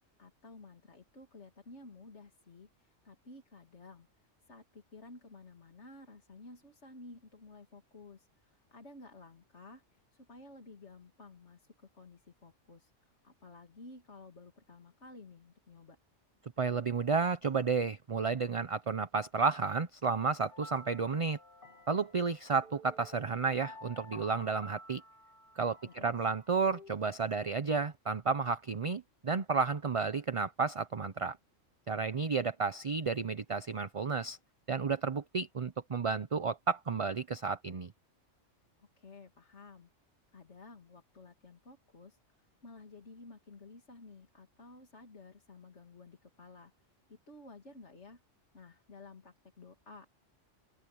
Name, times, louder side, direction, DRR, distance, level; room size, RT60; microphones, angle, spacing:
voice 1, 0.2-12.9 13.2-16.0 25.8-26.1 38.8-39.9 40.3-48.2 48.5-50.1, left 3 dB, 65° left, 2.9 m, -54 dB
voice 2, 16.6-21.4 21.9-25.0 25.6-31.4 31.9-34.4 34.7-37.9, right 5 dB, 35° right, 0.6 m, -32 dB
sound 1, 20.5-26.9, left 1 dB, 45° left, 1.8 m, -52 dB
open air
omnidirectional pair, 1.3 m